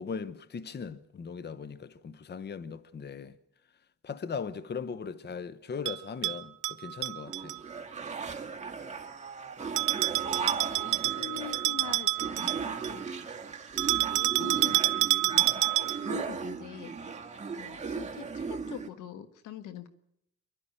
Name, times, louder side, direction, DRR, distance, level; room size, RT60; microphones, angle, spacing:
voice 1, 0.0-3.3 4.0-7.6, left 6 dB, 35° left, 0.9 m, -39 dB
Bell, 5.9-7.6 9.8-13.0 13.8-16.2, right 18 dB, 85° right, 0.7 m, -28 dB
sound 1, 7.3-18.9, right 5 dB, 25° right, 1.9 m, -37 dB
voice 2, 9.9-13.0 14.0-16.9 17.6-19.9, left 9 dB, 85° left, 1.4 m, -45 dB
24.5 x 12.0 x 8.8 m
cardioid pair, 90°, 30 cm